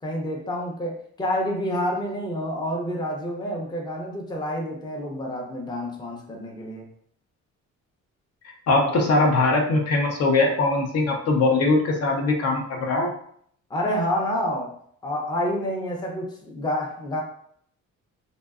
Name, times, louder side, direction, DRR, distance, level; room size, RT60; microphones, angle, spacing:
voice 1, 0.0-6.9 13.7-14.7 15.0-17.2, equal, 15° left, 0 dB, 0.5 m, -28 dB
voice 2, 8.7-13.1, left 2 dB, 55° left, 1 dB, 0.6 m, -21 dB
2.6 x 2.1 x 2.3 m, 0.64 s
cardioid pair, 90°, 30 cm